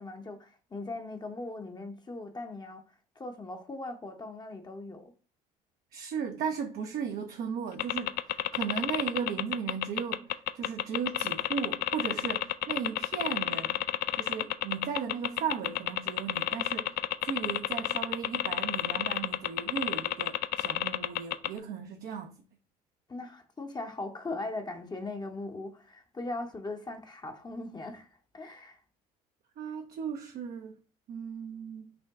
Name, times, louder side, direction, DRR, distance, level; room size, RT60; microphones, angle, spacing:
voice 1, 0.0-2.8 3.2-5.1 23.1-28.1 28.3-28.8, left 2 dB, 20° left, 0.8 m, -39 dB
voice 2, 5.9-13.8 14.2-22.4 29.6-30.8 31.1-31.9, right 7 dB, 55° right, 0.6 m, -36 dB
sound 1, 7.8-21.6, left 15 dB, 55° left, 0.4 m, -30 dB
5.8 x 2.2 x 3.5 m
hypercardioid pair, 65°, 19 cm